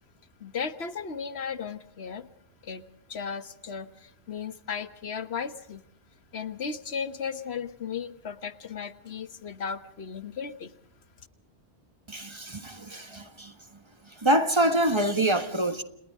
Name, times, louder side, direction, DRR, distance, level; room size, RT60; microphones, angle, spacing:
voice 1, 0.4-2.3 2.6-2.8 3.1-5.8 6.3-10.7, left 6 dB, 75° left, 1.5 m, -35 dB
voice 2, 12.1-13.5 14.1-15.8, right 1 dB, 25° right, 1.5 m, -26 dB
30.0 x 29.0 x 3.7 m
omnidirectional pair, 1.1 m